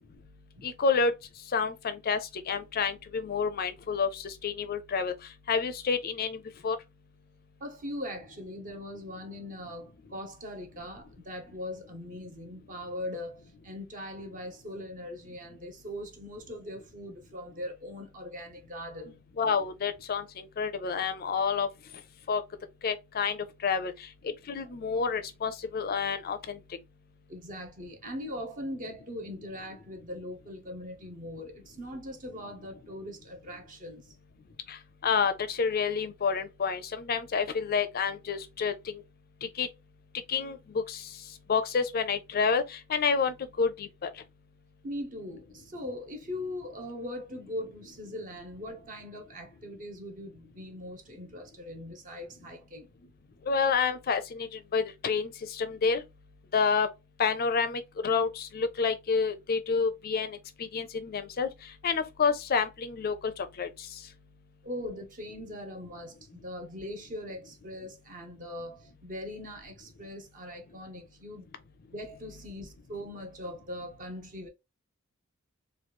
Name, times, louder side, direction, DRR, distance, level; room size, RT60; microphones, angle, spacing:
voice 1, 0.6-1.1 1.5-2.2 2.5-5.1 5.5-6.8 19.4-21.7 22.3-22.4 22.8-23.9 24.5-26.6 34.7-34.8 35.0-39.0 39.6-39.7 40.3-41.0 41.5-43.9 53.5-56.0 56.5-56.9 57.2-60.4 60.7-61.5 61.8-63.7, left 5 dB, 45° left, 0.5 m, -29 dB
voice 2, 7.6-19.2 27.3-34.1 44.8-52.9 64.6-66.2 66.4-71.5 71.9-74.5, left 1 dB, 40° right, 0.7 m, -40 dB
3.1 x 2.3 x 2.9 m
head